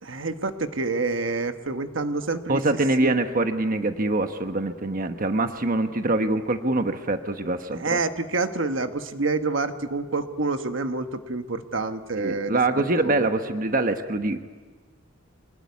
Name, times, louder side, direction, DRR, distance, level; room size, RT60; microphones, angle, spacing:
voice 1, 0.0-2.6 3.0-3.1 7.7-12.6 13.0-13.2, right 3 dB, 70° right, 8 dB, 1.3 m, -27 dB
voice 2, 2.5-8.0 12.2-14.4, right 2 dB, 45° right, 7 dB, 1.1 m, -24 dB
25.5 x 20.0 x 9.5 m, 1.4 s
head